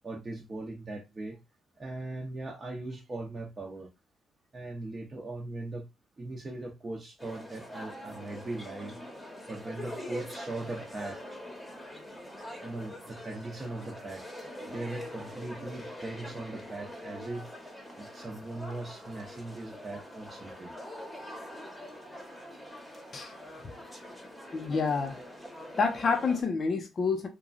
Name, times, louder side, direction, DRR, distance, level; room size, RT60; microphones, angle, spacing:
voice 1, 0.0-1.4 1.8-3.9 4.5-5.9 6.2-9.0 9.5-11.3 12.6-14.2 14.6-17.5 18.0-20.7 25.6-25.8, right 2 dB, 25° right, 0.7 m, -39 dB
sound 1, 7.2-26.4, equal, 10° left, 0.9 m, -44 dB
voice 2, 24.5-25.2 25.8-27.3, left 4 dB, 45° left, 0.5 m, -28 dB
2.9 x 2.2 x 2.4 m
cardioid pair, 90°, 0 cm